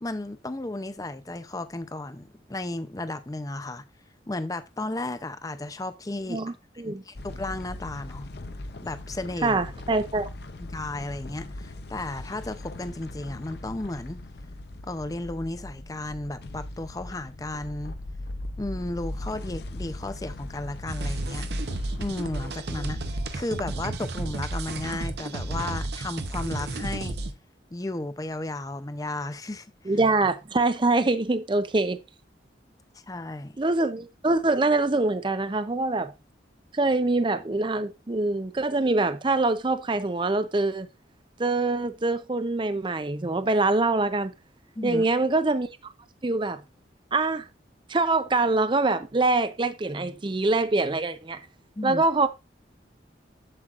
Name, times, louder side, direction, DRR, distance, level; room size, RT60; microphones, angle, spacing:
voice 1, 0.0-3.8 4.3-6.5 6.8-8.3 8.8-9.6 10.6-14.2 14.8-18.0 18.6-21.5 22.0-23.0 23.3-27.2 27.7-29.9 32.9-33.5 44.8-45.1 51.8-52.0, left 2 dB, 20° left, 0.5 m, -34 dB
voice 2, 6.3-7.0 9.4-10.3 29.9-32.0 33.6-36.1 36.7-40.9 41.4-44.3 44.8-45.7 46.2-46.6 47.1-47.4 47.9-51.4 51.8-52.3, right 3 dB, 25° right, 0.5 m, -24 dB
sound 1, 7.1-22.5, left 2 dB, 60° left, 0.6 m, -39 dB
sound 2, 20.9-27.3, right 2 dB, 60° right, 0.8 m, -32 dB
7.6 x 7.5 x 2.4 m
head